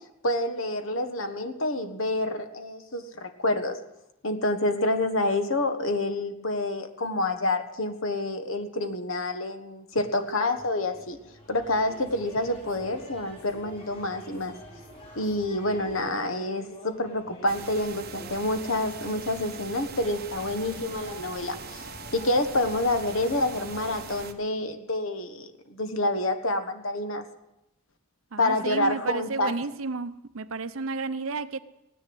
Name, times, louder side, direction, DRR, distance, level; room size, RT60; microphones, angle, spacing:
voice 1, 0.2-3.8 4.2-11.2 11.5-14.6 15.1-21.8 22.1-27.2 28.4-29.5, left 2 dB, 65° left, 1.5 m, -28 dB
sound 1, 9.9-24.3, right 1 dB, 25° left, 4.6 m, -47 dB
sound 2, 17.5-24.3, right 5 dB, 45° right, 1.2 m, -42 dB
voice 2, 28.3-31.6, right 4 dB, 70° right, 0.7 m, -32 dB
16.5 x 10.0 x 8.0 m
head